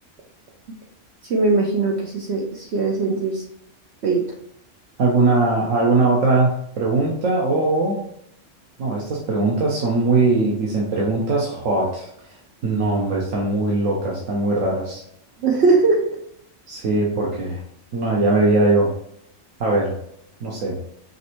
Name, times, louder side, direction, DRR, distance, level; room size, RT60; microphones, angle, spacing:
voice 1, 1.3-3.4 4.0-4.2 15.4-16.2, right 3 dB, 65° right, 0 dB, 0.9 m, -20 dB
voice 2, 5.0-8.0 8.8-12.1 12.6-15.0 16.7-17.6 17.9-18.9 19.6-19.9 20.4-20.8, right 2 dB, 90° right, -3 dB, 1.3 m, -20 dB
5.2 x 3.2 x 3.0 m, 0.72 s
omnidirectional pair, 1.3 m